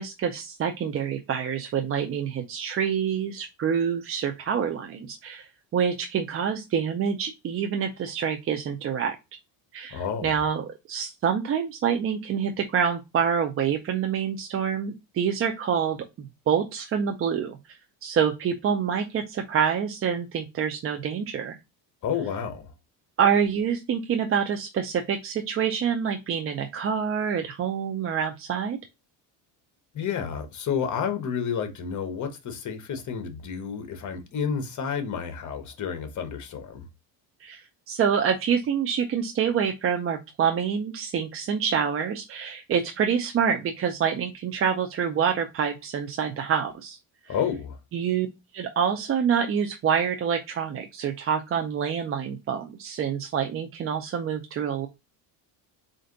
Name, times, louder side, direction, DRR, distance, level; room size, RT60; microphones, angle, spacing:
voice 1, 0.0-9.2 9.7-16.0 16.5-21.6 23.2-28.8 37.4-47.0 47.3-47.4 47.9-48.3 48.5-54.9, right 7 dB, 30° right, 0.4 m, -27 dB
voice 2, 9.9-10.4 22.0-22.7 29.9-36.9 47.3-47.8, left 7 dB, 40° left, 1.0 m, -30 dB
4.2 x 2.6 x 3.8 m
cardioid pair, 120°, 47 cm